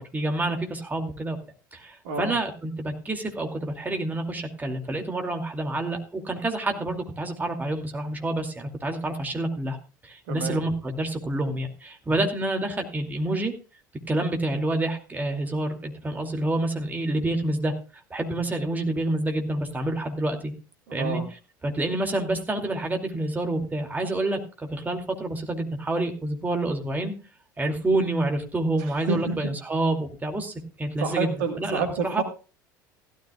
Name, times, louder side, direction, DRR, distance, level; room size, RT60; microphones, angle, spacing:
voice 1, 0.0-1.4 1.7-9.8 10.0-13.5 14.1-17.7 18.1-20.5 20.9-21.2 21.6-27.1 27.6-32.2, right 2 dB, 15° right, 3 dB, 2.6 m, -28 dB
voice 2, 10.3-10.6 20.9-21.3 29.1-29.4 31.0-32.2, right 4 dB, 60° right, 6 dB, 1.9 m, -28 dB
16.0 x 13.0 x 2.4 m, 0.33 s
figure-of-eight pair, 70°, 11 cm